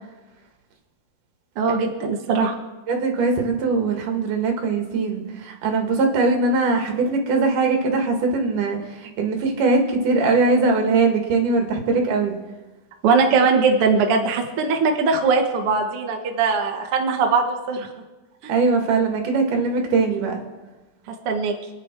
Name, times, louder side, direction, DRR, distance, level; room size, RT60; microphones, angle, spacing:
voice 1, 1.5-2.6 13.0-17.9 18.4-18.5 21.1-21.5, right 4 dB, 80° right, 3 dB, 1.2 m, -20 dB
voice 2, 2.9-12.4 18.5-20.4, right 3 dB, 55° right, 3 dB, 3.1 m, -21 dB
27.0 x 9.9 x 4.5 m, 1.2 s
omnidirectional pair, 4.8 m